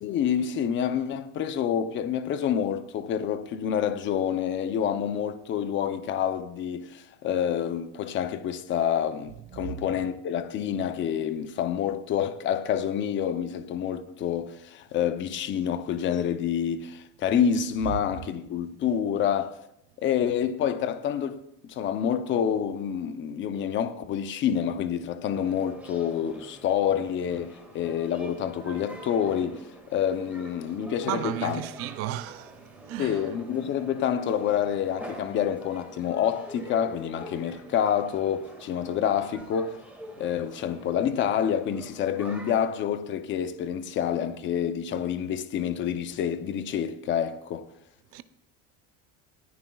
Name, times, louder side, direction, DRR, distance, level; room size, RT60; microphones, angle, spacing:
voice 1, 0.0-19.6 20.0-31.6 33.0-39.8 40.2-47.7, left 9 dB, 35° left, 0.6 m, -28 dB
sound 1, 25.3-42.6, right 1 dB, 5° right, 1.9 m, -46 dB
voice 2, 31.1-32.6 32.9-33.2 48.1-48.2, right 14 dB, 45° right, 0.5 m, -33 dB
20.0 x 9.5 x 2.3 m
cardioid pair, 165°, 32 cm